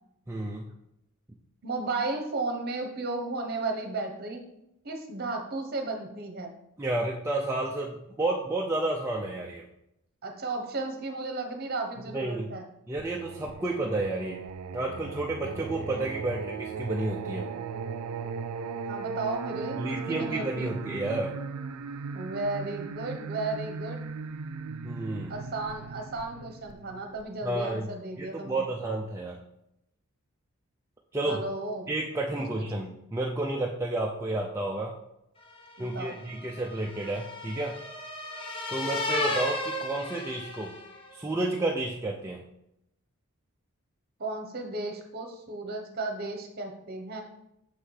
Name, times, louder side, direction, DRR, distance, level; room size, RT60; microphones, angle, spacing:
voice 1, 0.3-0.7 6.8-9.6 12.1-12.5 12.9-14.4 14.7-17.5 19.8-21.3 24.8-25.3 27.4-27.9 28.2-29.4 31.1-31.4 31.9-34.9 35.8-37.8 38.7-40.7 41.1-42.4, right 2 dB, 10° right, -2 dB, 0.4 m, -31 dB
voice 2, 1.6-4.4 4.8-6.5 10.2-12.7 18.9-20.7 22.1-24.1 25.3-28.6 31.2-31.9 32.6-32.7 35.8-36.2 44.2-47.2, right 3 dB, 45° right, 4 dB, 1.0 m, -34 dB
Singing, 13.0-27.7, right 5 dB, 85° right, 0.4 m, -37 dB
sound 1, 35.6-41.1, left 2 dB, 25° left, 0.7 m, -34 dB
6.3 x 5.6 x 3.2 m, 0.82 s
head